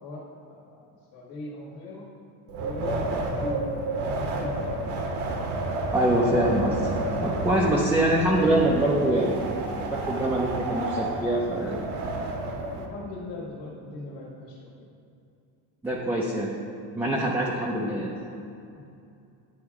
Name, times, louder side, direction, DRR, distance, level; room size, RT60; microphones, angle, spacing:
voice 1, 0.0-0.8 1.1-2.1 2.5-4.6 12.6-14.7 18.7-18.8, left 2 dB, 85° left, -3 dB, 1.5 m, -39 dB
Wind, 2.5-12.9, right 2 dB, 70° right, 1.0 m, -30 dB
voice 2, 5.9-6.9 7.2-9.5 9.9-11.8 15.8-16.5 16.9-18.1, right 1 dB, 5° right, -4 dB, 0.3 m, -24 dB
9.7 x 3.5 x 4.7 m, 2.6 s
cardioid pair, 145°, 43 cm